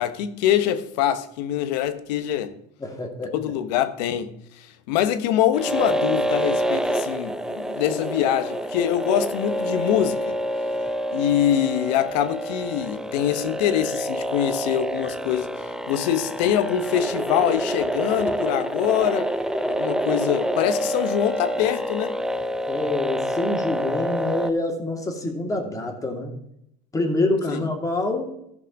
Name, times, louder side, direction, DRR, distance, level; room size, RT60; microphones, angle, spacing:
voice 1, 0.0-2.5 3.3-10.4 11.1-15.5 15.9-19.3 19.7-22.1 27.5-27.6, left 11 dB, 80° left, 1.0 m, -24 dB
voice 2, 2.8-3.3 22.7-26.3 26.9-28.3, left 2 dB, 15° left, 2.3 m, -26 dB
sound 1, 5.5-24.5, equal, 5° right, 0.5 m, -27 dB
13.5 x 5.4 x 5.3 m
supercardioid pair, 110°, 21 cm